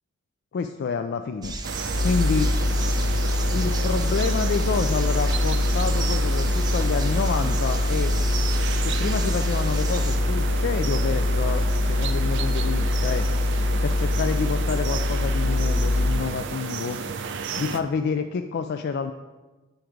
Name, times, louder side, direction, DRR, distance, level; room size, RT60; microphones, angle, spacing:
voice 1, 0.5-1.5 2.0-2.5 3.5-8.1 8.8-13.3 13.8-17.1 17.6-19.1, left 5 dB, 55° left, 7 dB, 0.3 m, -28 dB
sound 1, 1.4-10.2, right 2 dB, 20° right, 0.7 m, -36 dB
sound 2, 1.6-17.8, right 5 dB, 60° right, 0.5 m, -32 dB
sound 3, 1.9-16.1, left 2 dB, 75° left, 0.8 m, -24 dB
9.2 x 4.5 x 5.0 m, 1.2 s
head